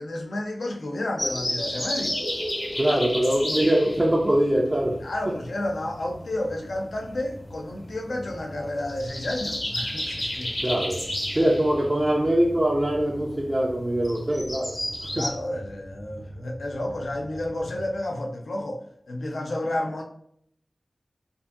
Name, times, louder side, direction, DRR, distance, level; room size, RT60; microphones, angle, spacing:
voice 1, 0.0-2.2 2.9-3.1 5.0-10.5 11.4-11.5 15.1-18.8 19.1-20.0, left 1 dB, 90° left, 2 dB, 0.5 m, -31 dB
sound 1, 1.2-15.3, left 1 dB, 40° left, 0.7 m, -32 dB
voice 2, 2.7-5.0 10.6-11.1 11.3-14.8 15.0-15.2, right 1 dB, 30° right, -3 dB, 0.4 m, -23 dB
sound 2, 4.0-18.0, equal, 50° right, 0.9 m, -44 dB
2.6 x 2.6 x 2.5 m, 0.69 s
wide cardioid pair, 65°, 0 cm